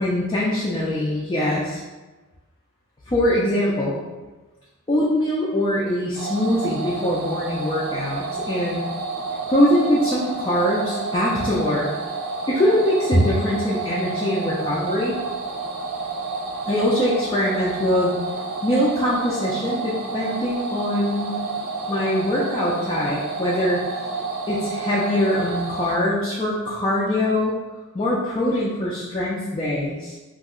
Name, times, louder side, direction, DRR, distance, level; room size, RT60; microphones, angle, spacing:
voice 1, 0.0-1.8 3.1-4.0 4.9-8.8 9.5-11.9 12.5-15.2 16.7-18.2 18.6-21.4 21.9-23.8 24.5-27.6 27.9-30.2, left 1 dB, 20° left, -7 dB, 0.3 m, -22 dB
sound 1, 6.2-26.0, right 4 dB, 55° right, 0.4 m, -30 dB
2.6 x 2.0 x 3.6 m, 1.2 s
head